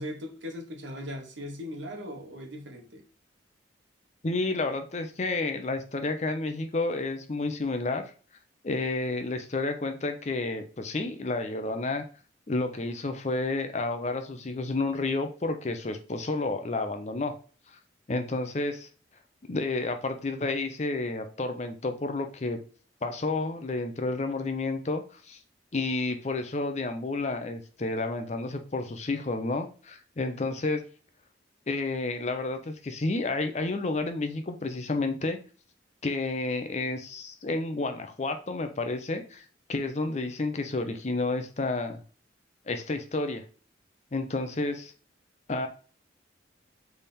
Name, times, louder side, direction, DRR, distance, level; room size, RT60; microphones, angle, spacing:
voice 1, 0.0-3.0, equal, 75° right, 4 dB, 1.1 m, -39 dB
voice 2, 4.2-8.0 8.6-12.0 12.5-17.3 17.7-17.8 18.1-18.9 19.5-22.6 23.0-25.4 25.7-30.8 31.7-35.4 36.0-42.0 42.7-43.4 44.1-44.9 45.5-45.7, left 2 dB, 35° left, 7 dB, 0.6 m, -30 dB
3.5 x 3.4 x 4.2 m, 0.39 s
head